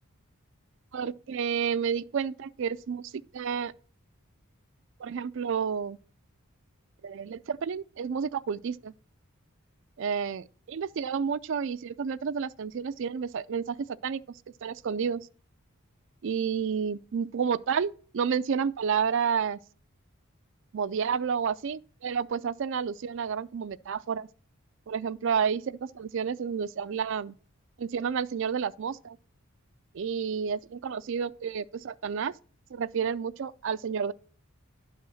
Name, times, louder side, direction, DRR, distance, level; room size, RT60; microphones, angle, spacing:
voice 1, 0.9-3.7 5.0-6.0 7.0-8.9 10.0-13.8 14.0-15.2 16.2-19.6 20.7-24.3 24.9-27.3 27.8-29.2 29.9-32.3 32.7-34.1, right 6 dB, 60° right, 0.4 m, -30 dB
11.0 x 4.2 x 6.3 m
head